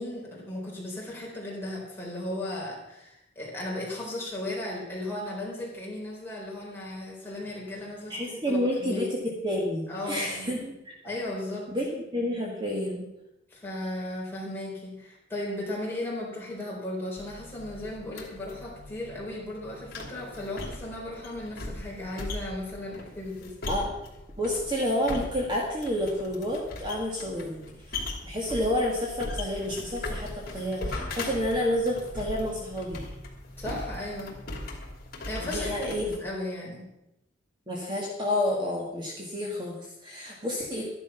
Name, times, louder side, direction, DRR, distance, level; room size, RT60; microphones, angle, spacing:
voice 1, 0.0-9.1 9.9-10.6 11.0-11.7 13.5-23.6 33.6-34.4 35.2-36.9, left 1 dB, 10° left, -4 dB, 4.3 m, -36 dB
voice 2, 8.1-10.9 11.7-13.1 23.7-24.0 24.4-33.1 35.4-36.0 37.7-40.8, left 1 dB, 25° right, -2 dB, 2.0 m, -30 dB
sound 1, 17.2-36.2, left 2 dB, 50° left, 2.8 m, -39 dB
13.0 x 11.0 x 5.8 m, 0.89 s
head